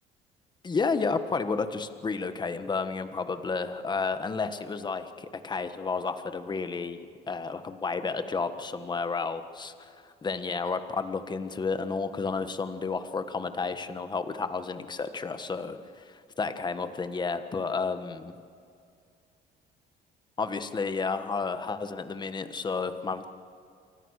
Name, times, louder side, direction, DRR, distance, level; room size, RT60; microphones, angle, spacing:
voice 1, 0.6-18.4 20.4-23.3, left 4 dB, 25° left, 10 dB, 1.5 m, -31 dB
28.0 x 24.0 x 6.6 m, 2.3 s
cardioid pair, 110°, 17 cm